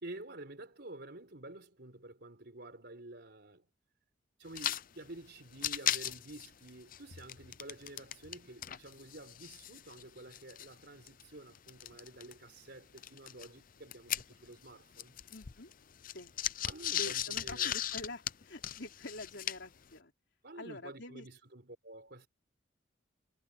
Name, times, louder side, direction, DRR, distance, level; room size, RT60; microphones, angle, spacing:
voice 1, 0.0-3.7 4.4-15.2 16.7-17.8 20.4-22.3, right 2 dB, 60° right, 4.2 m, -50 dB
sound 1, 4.5-4.8 5.1-5.2 5.5-8.4 8.6-12.3 13.0-14.7 14.9-19.8, left 11 dB, 45° left, 0.6 m, -37 dB
voice 2, 15.3-15.7 16.0-16.3 17.0-20.1 20.6-21.3, left 2 dB, 65° left, 4.0 m, -46 dB
head